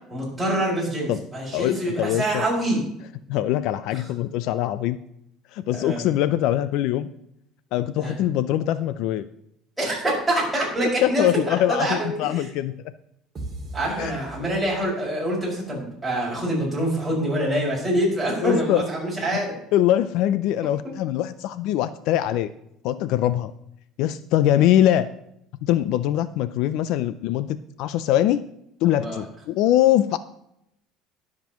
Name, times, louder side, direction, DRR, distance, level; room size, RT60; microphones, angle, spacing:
voice 1, 0.1-2.8 3.9-4.0 5.7-6.0 8.0-8.2 9.8-12.5 13.7-19.6 28.9-29.2, right 1 dB, 5° right, -6 dB, 5.3 m, -25 dB
voice 2, 1.5-2.5 3.3-5.0 5.5-7.1 7.7-9.3 11.0-11.9 12.2-12.7 14.0-14.1 18.4-18.8 19.7-22.5 22.8-23.5 24.0-25.1 25.6-28.4 28.8-30.2, left 12 dB, 65° left, 14 dB, 0.4 m, -22 dB
sound 1, 13.3-15.2, right 1 dB, 25° right, 2.3 m, -38 dB
20.5 x 7.5 x 3.0 m, 0.77 s
cardioid pair, 160°, 0 cm